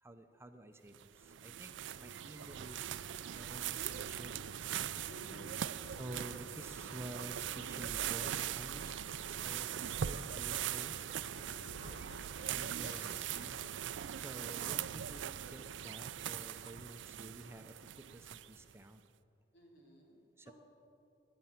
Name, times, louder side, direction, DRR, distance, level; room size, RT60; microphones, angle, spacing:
voice 1, 0.0-4.4 6.0-9.1 9.4-10.9 12.5-19.0 20.4-20.5, right 1 dB, 15° right, 7 dB, 0.6 m, -51 dB
sound 1, 0.9-18.7, right 10 dB, 85° right, 0.4 m, -41 dB
sound 2, 3.4-13.7, left 5 dB, 60° left, 0.4 m, -57 dB
voice 2, 5.1-5.6 11.5-11.9 19.5-20.5, equal, 85° left, -1 dB, 3.0 m, -56 dB
15.5 x 11.0 x 5.8 m, 2.7 s
head